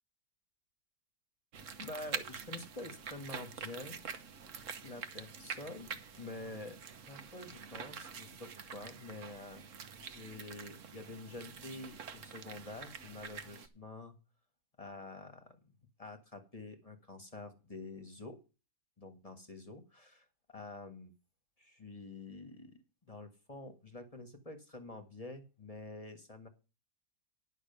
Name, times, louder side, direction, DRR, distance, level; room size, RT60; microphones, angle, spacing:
sound 1, 1.5-13.7, right 6 dB, 55° right, 1.2 m, -46 dB
voice 1, 1.8-4.0 4.8-6.8 7.1-9.6 10.0-14.1 14.8-15.7 16.0-18.4 19.0-21.1 21.6-22.8 23.1-26.5, left 2 dB, 25° left, 6 dB, 1.5 m, -48 dB
11.0 x 6.4 x 6.8 m, 0.31 s
omnidirectional pair, 1.7 m